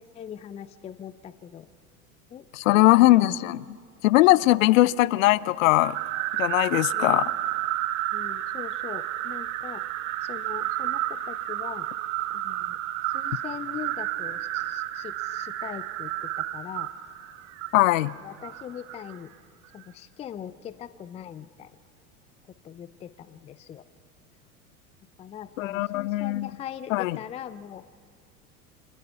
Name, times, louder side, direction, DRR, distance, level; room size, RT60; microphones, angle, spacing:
voice 1, 0.0-1.7 2.3-2.5 2.7-3.6 4.6-4.8 6.9-7.2 8.1-9.8 10.2-11.9 12.3-12.8 13.1-16.9 18.2-19.3 19.7-21.7 22.6-23.8 25.2-27.9, left 9 dB, 15° left, 0.4 m, -41 dB
voice 2, 2.5-3.8 4.0-6.0 6.4-7.2 17.7-18.1 25.6-26.5 26.9-27.2, left 17 dB, 60° left, 0.6 m, -20 dB
sound 1, 5.8-19.2, right 14 dB, 55° right, 1.2 m, -31 dB
25.5 x 20.0 x 5.8 m
figure-of-eight pair, 80°, 45 cm